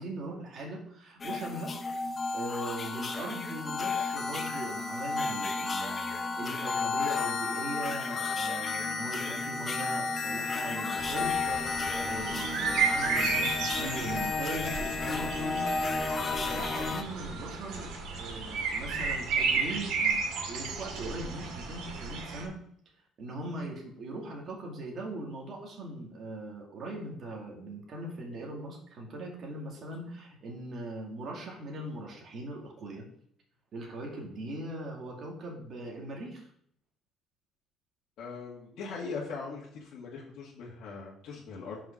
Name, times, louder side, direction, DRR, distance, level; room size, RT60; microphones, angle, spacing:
voice 1, 0.0-15.6 16.3-22.6 23.2-33.1 33.7-36.5, right 2 dB, 45° right, -1 dB, 2.3 m, -40 dB
sound 1, 1.2-17.0, left 4 dB, 25° left, 0.9 m, -32 dB
sound 2, 11.0-22.4, right 5 dB, 80° right, 2.1 m, -33 dB
voice 2, 38.2-41.8, left 4 dB, 65° left, -6 dB, 2.0 m, -40 dB
5.8 x 5.6 x 5.9 m, 0.65 s
cardioid pair, 140°, 0 cm